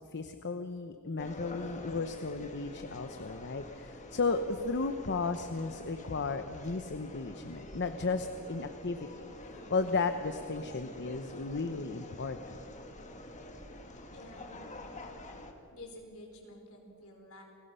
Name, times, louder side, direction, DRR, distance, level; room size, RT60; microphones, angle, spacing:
voice 1, 0.1-9.3 9.7-12.6, left 4 dB, 55° left, 8 dB, 0.9 m, -34 dB
sound 1, 1.2-15.5, left 1 dB, 35° left, 1.9 m, -47 dB
voice 2, 14.1-14.6 15.7-17.4, left 1 dB, 70° left, 2 dB, 4.6 m, -50 dB
30.0 x 19.5 x 5.7 m, 2.6 s
head